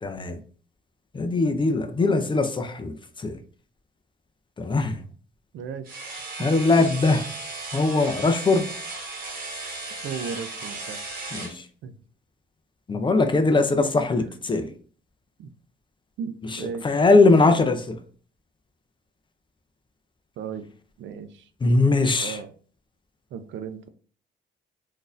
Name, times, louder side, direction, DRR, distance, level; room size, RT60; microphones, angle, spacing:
voice 1, 0.0-0.4 1.1-3.4 4.6-5.0 6.4-7.2 7.7-8.7 11.3-11.7 12.9-14.7 16.4-18.0 21.6-22.4, left 3 dB, 25° left, 0.5 m, -21 dB
voice 2, 5.5-6.0 6.7-6.9 10.0-11.0 11.8-12.0 14.2-14.3 15.4-15.5 16.2-16.9 20.4-20.7 21.0-21.5 22.2-22.5 23.3-23.9, right 6 dB, 70° right, 0.5 m, -35 dB
sound 1, 5.9-11.6, right 2 dB, 50° right, 1.2 m, -36 dB
3.8 x 2.6 x 2.4 m
cardioid pair, 90°, 20 cm